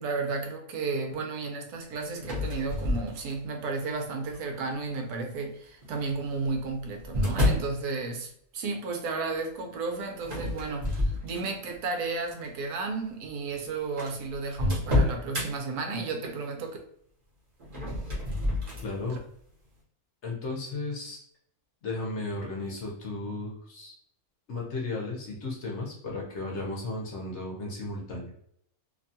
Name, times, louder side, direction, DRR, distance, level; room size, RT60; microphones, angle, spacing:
voice 1, 0.0-16.8 19.1-19.2, right 4 dB, 85° right, 3 dB, 1.2 m, -33 dB
sound 1, 2.2-3.6 4.3-4.7 5.8-7.7 10.2-11.8 12.2-12.5 13.3-13.4 13.5-13.6 14.0-15.5 17.6-18.9, left 1 dB, 35° right, 0.8 m, -29 dB
voice 2, 18.8-19.2 20.2-21.2 21.8-23.9 24.5-28.3, left 2 dB, 55° left, -2 dB, 0.9 m, -34 dB
2.9 x 2.3 x 2.6 m, 0.70 s
omnidirectional pair, 1.6 m